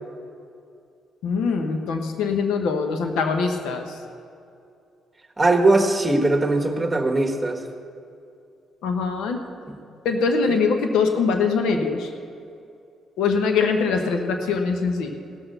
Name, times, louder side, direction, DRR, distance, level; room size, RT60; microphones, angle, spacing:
voice 1, 1.2-4.0 8.8-9.4 10.0-12.1 13.2-15.2, left 5 dB, 90° left, 5 dB, 0.9 m, -23 dB
voice 2, 5.4-7.6 9.7-9.8 10.5-10.6, right 2 dB, 15° right, 2 dB, 1.4 m, -20 dB
17.5 x 6.1 x 6.7 m, 2.5 s
cardioid pair, 90°, 0 cm